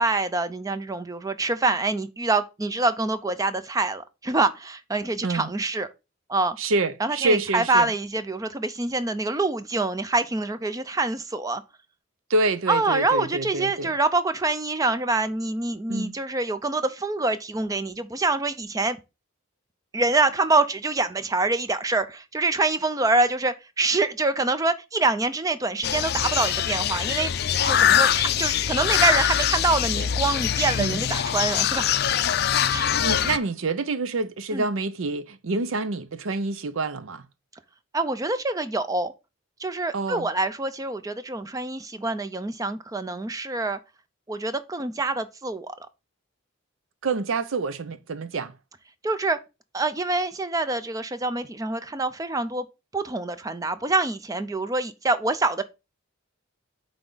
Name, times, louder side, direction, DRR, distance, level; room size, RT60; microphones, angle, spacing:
voice 1, 0.0-5.9 6.3-6.6 7.0-11.6 12.7-19.0 19.9-27.3 27.6-31.9 32.7-32.9 34.5-34.7 37.9-39.1 39.6-43.8 44.3-45.8 49.0-49.4 49.7-52.7 52.9-55.6, right 3 dB, 15° right, 0.4 m, -25 dB
voice 2, 6.6-7.9 12.3-13.9 15.9-16.1 30.8-31.0 33.0-37.2 39.9-40.3 47.0-48.5, right 3 dB, 70° right, 0.6 m, -27 dB
sound 1, 25.8-33.4, left 9 dB, 50° left, 0.4 m, -23 dB
9.1 x 3.5 x 3.8 m
head